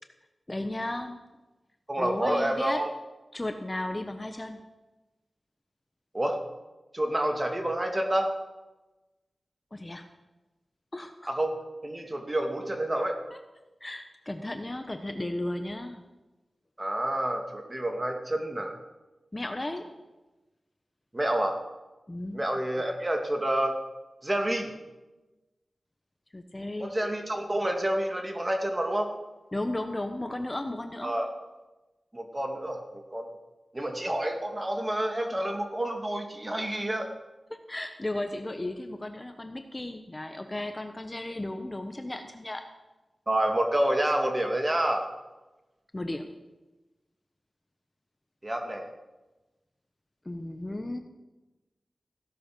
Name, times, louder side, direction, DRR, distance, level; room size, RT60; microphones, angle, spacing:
voice 1, 0.5-1.2 2.0-2.8 3.3-4.6 9.7-10.1 10.9-11.3 13.3-13.4 13.8-16.0 19.3-19.9 22.1-22.4 26.3-27.0 29.5-31.1 37.5-42.6 45.9-46.3 50.2-51.0, left 1 dB, 25° left, 7 dB, 1.1 m, -34 dB
voice 2, 1.9-2.9 6.1-6.4 6.9-8.3 11.3-13.2 16.8-18.8 21.1-21.6 22.3-23.8 24.2-24.7 26.8-29.1 31.0-31.3 32.1-33.4 33.7-37.1 43.3-45.1 48.4-48.9, right 1 dB, 25° right, 4 dB, 2.4 m, -28 dB
16.0 x 11.0 x 6.2 m, 1.1 s
wide cardioid pair, 75°, 0 cm